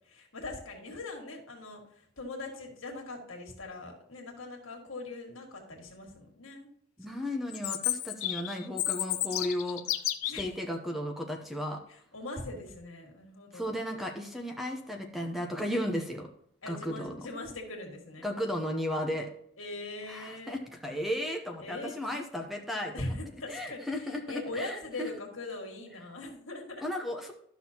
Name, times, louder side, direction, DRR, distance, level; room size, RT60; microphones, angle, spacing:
voice 1, 0.1-1.8 2.2-6.7 7.0-7.1 10.3-10.4 11.9-13.7 16.6-18.3 19.6-20.6 21.6-22.0 22.9-26.8, left 2 dB, 75° left, 2 dB, 1.9 m, -41 dB
voice 2, 7.0-9.8 10.2-11.8 13.5-16.3 16.7-17.3 18.2-19.3 20.1-23.2 23.5-25.1 26.8-27.3, left 1 dB, ahead, 2 dB, 0.7 m, -34 dB
Chirp tweet, 7.5-10.5, left 14 dB, 90° left, 0.6 m, -32 dB
12.5 x 6.1 x 2.8 m, 0.69 s
head